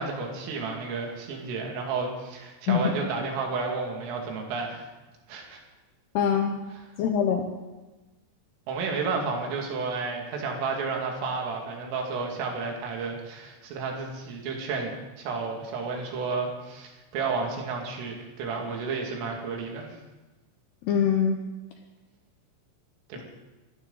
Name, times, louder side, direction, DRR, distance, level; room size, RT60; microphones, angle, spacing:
voice 1, 0.0-4.9 5.3-5.6 8.7-19.9 23.1-23.2, right 4 dB, 75° right, 1 dB, 5.0 m, -31 dB
voice 2, 6.1-6.5 7.0-7.4 20.8-21.4 23.2-23.3, left 7 dB, 75° left, 3 dB, 2.5 m, -23 dB
24.5 x 14.0 x 4.0 m, 1.1 s
omnidirectional pair, 5.9 m